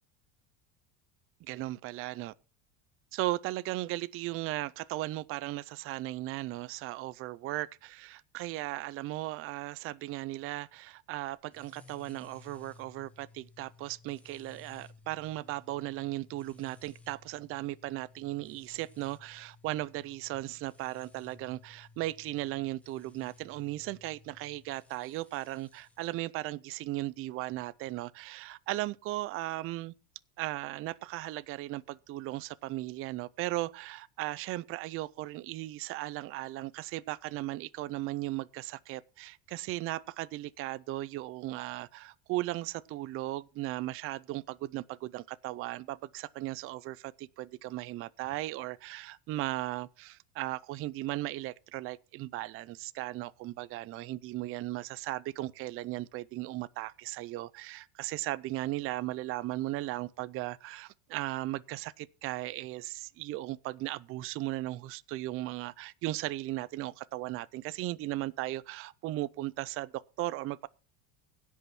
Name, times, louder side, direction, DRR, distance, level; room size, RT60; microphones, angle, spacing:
voice 1, 1.5-2.3 3.1-29.9 30.4-70.7, right 17 dB, 35° right, 0.5 m, -37 dB
sound 1, 11.5-26.2, left 4 dB, 5° left, 1.1 m, -58 dB
16.5 x 5.6 x 6.0 m
cardioid pair, 160°, 38 cm